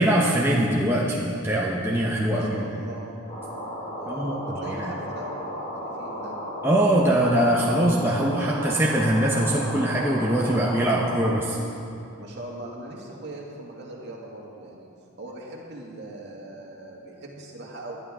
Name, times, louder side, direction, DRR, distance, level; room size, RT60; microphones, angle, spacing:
voice 1, 0.0-2.6 4.1-4.9 6.6-11.6, right 1 dB, 10° right, -4 dB, 0.9 m, -22 dB
voice 2, 2.2-3.2 3.9-6.4 12.2-14.9 15.2-18.0, right 2 dB, 50° right, -2 dB, 2.1 m, -40 dB
sound 1, 3.3-11.3, equal, 35° left, 3.0 m, -34 dB
19.5 x 11.5 x 3.7 m, 2.6 s
head